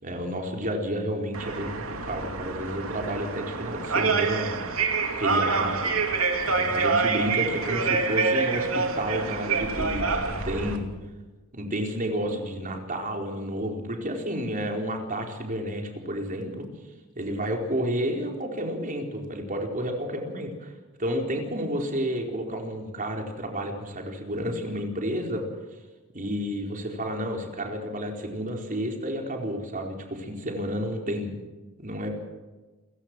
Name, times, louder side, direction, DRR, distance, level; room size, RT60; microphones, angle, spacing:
voice 1, 0.0-4.6 5.1-5.9 6.5-10.9 11.5-16.7 17.2-20.7 21.0-25.5 26.1-31.3 31.8-32.1, equal, 40° right, 2 dB, 4.4 m, -31 dB
sound 1, 1.3-10.8, right 4 dB, 85° right, 2.8 m, -27 dB
27.5 x 16.0 x 6.3 m, 1.2 s
head